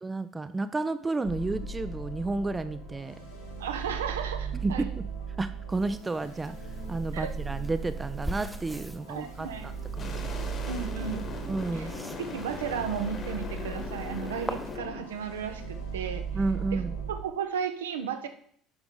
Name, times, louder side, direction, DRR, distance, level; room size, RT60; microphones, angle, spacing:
voice 1, 0.0-3.1 4.6-5.0 5.4-6.6 6.9-9.7 10.0-10.1 11.5-11.9 16.3-16.9, right 3 dB, 20° right, 12 dB, 0.5 m, -31 dB
sound 1, 1.2-17.2, right 5 dB, 85° left, 2.7 m, -38 dB
voice 2, 3.6-4.9 7.1-7.3 9.1-9.7 10.7-11.3 11.7-11.9 12.3-16.3 16.7-16.8 17.1-18.3, right 7 dB, 70° right, 7 dB, 0.8 m, -34 dB
sound 2, 5.7-14.8, equal, 5° right, 0.9 m, -44 dB
sound 3, 10.0-15.0, left 4 dB, 35° left, 1.5 m, -39 dB
8.8 x 5.8 x 3.9 m, 0.62 s
figure-of-eight pair, 60°, 0 cm